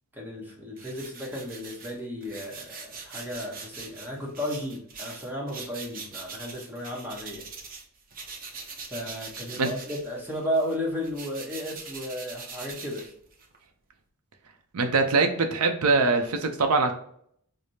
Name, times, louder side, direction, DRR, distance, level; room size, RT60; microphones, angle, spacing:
voice 1, 0.1-7.4 8.9-13.1, equal, 10° right, -2 dB, 0.9 m, -34 dB
sound 1, 0.8-7.8 8.1-13.6, right 4 dB, 40° right, 0.6 m, -42 dB
voice 2, 14.7-16.9, right 3 dB, 80° right, 5 dB, 0.5 m, -23 dB
4.9 x 2.0 x 2.7 m, 0.66 s
head